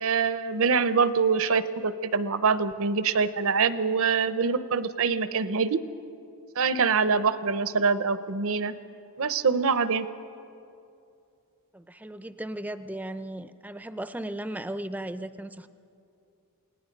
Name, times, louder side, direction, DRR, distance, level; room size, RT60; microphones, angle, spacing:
voice 1, 0.0-5.8 6.6-8.7 9.2-10.1, right 5 dB, 65° right, 13 dB, 0.8 m, -24 dB
voice 2, 11.7-15.7, right 1 dB, 5° right, 12 dB, 0.5 m, -36 dB
28.5 x 19.0 x 5.3 m, 2.6 s
head